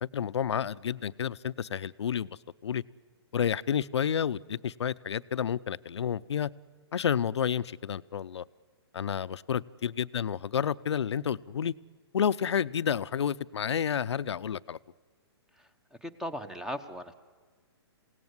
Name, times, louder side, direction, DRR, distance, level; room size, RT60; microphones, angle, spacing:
voice 1, 0.0-2.8 3.3-6.5 6.9-8.4 8.9-11.7 12.1-14.8, left 8 dB, 85° left, 0.7 m, -30 dB
voice 2, 16.0-17.1, equal, 5° right, 1.0 m, -37 dB
28.0 x 17.5 x 9.7 m
hypercardioid pair, 150°, 14 cm